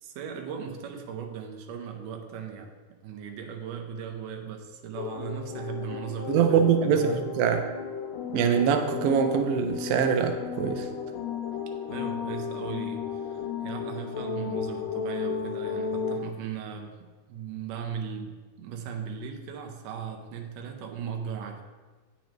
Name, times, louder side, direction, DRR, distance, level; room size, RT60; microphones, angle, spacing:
voice 1, 0.0-2.7 3.0-7.0 11.9-21.6, right 7 dB, 75° right, 4 dB, 1.8 m, -38 dB
sound 1, 5.0-16.2, left 6 dB, 75° left, 1.9 m, -34 dB
voice 2, 6.3-7.6 8.3-10.9, right 7 dB, 90° right, 6 dB, 2.0 m, -23 dB
8.8 x 5.2 x 3.0 m, 1.3 s
omnidirectional pair, 3.4 m